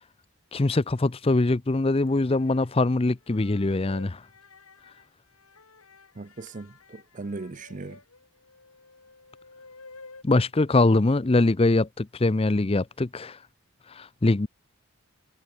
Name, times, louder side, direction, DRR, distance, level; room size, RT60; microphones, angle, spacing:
voice 1, 0.5-4.2 10.2-13.4 14.0-14.5, left 2 dB, 25° left, 0.5 m, -23 dB
sound 1, 2.0-2.7 3.2-10.2, left 3 dB, 85° left, 4.0 m, -51 dB
voice 2, 6.2-8.0, right 3 dB, 35° right, 0.5 m, -38 dB
head